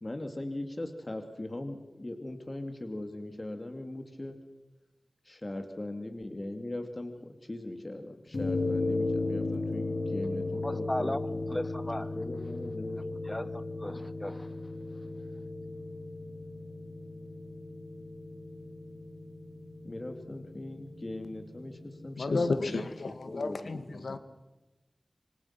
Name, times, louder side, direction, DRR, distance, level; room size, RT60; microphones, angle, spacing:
voice 1, 0.0-4.4 5.2-11.4 12.0-13.5 19.8-22.9 23.3-23.8, left 1 dB, 35° left, 2.4 m, -40 dB
sound 1, 8.3-22.9, left 2 dB, 60° left, 2.3 m, -36 dB
voice 2, 10.6-11.2 11.5-12.2 13.3-14.5, left 1 dB, 15° left, 1.2 m, -36 dB
voice 3, 22.2-24.2, left 3 dB, 90° left, 1.8 m, -32 dB
27.5 x 25.0 x 5.9 m
wide cardioid pair, 65°, 0 cm